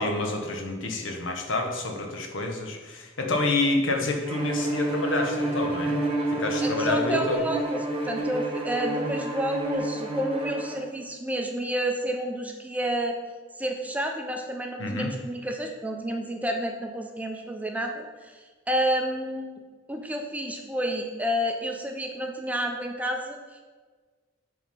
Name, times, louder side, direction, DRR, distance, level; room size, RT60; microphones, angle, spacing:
voice 1, 0.0-5.9 6.3-7.4 14.8-15.1, left 2 dB, 75° left, 2 dB, 1.2 m, -28 dB
Bowed string instrument, 4.3-10.8, right 1 dB, 30° right, 1.1 m, -29 dB
voice 2, 6.6-7.8 8.0-13.2 13.6-18.4 18.7-19.6 19.9-23.6, right 1 dB, 10° right, 3 dB, 0.6 m, -30 dB
8.0 x 3.7 x 5.4 m, 1.4 s
head